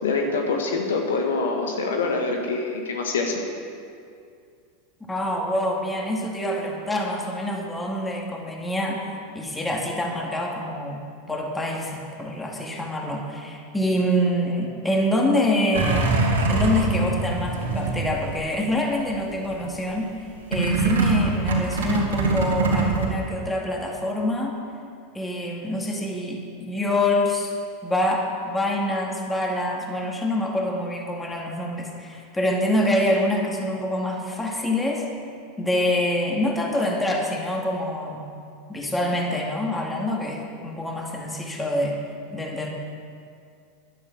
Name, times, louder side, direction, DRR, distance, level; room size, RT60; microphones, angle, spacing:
voice 1, 0.0-3.4, left 3 dB, 80° left, 2 dB, 1.7 m, -25 dB
voice 2, 5.0-9.0 9.3-11.0 11.3-16.2 16.5-20.2 20.5-24.6 25.1-27.5 27.8-35.1 35.6-38.3 38.7-42.0 42.3-42.7, left 1 dB, 10° left, -1 dB, 2.3 m, -26 dB
sound 1, 15.7-18.7 19.1-19.7 20.5-23.1, right 3 dB, 85° right, 2.7 m, -23 dB
11.0 x 9.9 x 7.3 m, 2.4 s
hypercardioid pair, 95°, 0 cm